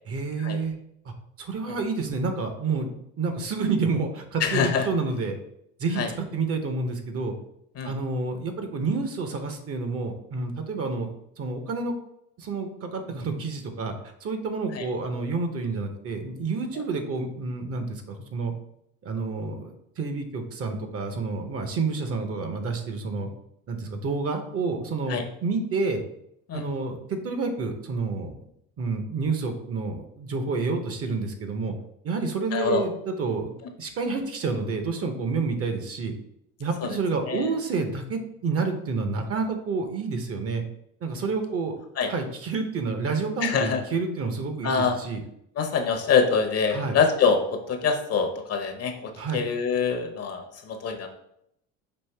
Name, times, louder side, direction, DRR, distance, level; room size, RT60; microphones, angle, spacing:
voice 1, 0.1-0.7 1.0-1.1 1.4-2.9 3.2-5.4 5.8-7.3 7.8-11.1 11.4-11.9 12.4-14.0 14.2-18.5 19.0-23.3 23.7-26.0 26.5-28.4 28.8-31.7 32.0-36.1 36.6-40.6 41.0-41.8 42.1-45.2 46.7-47.0 49.2-49.4, right 4 dB, 40° right, 6 dB, 0.8 m, -29 dB
voice 2, 4.4-4.8 6.0-6.1 7.8-7.9 14.7-14.8 25.1-25.2 26.5-26.6 32.5-32.8 36.8-37.0 37.3-37.5 42.0-42.1 43.4-43.8 44.6-44.9 45.6-51.1, left 5 dB, 40° left, 5 dB, 0.7 m, -25 dB
5.3 x 2.5 x 3.3 m, 0.76 s
supercardioid pair, 90°, 38 cm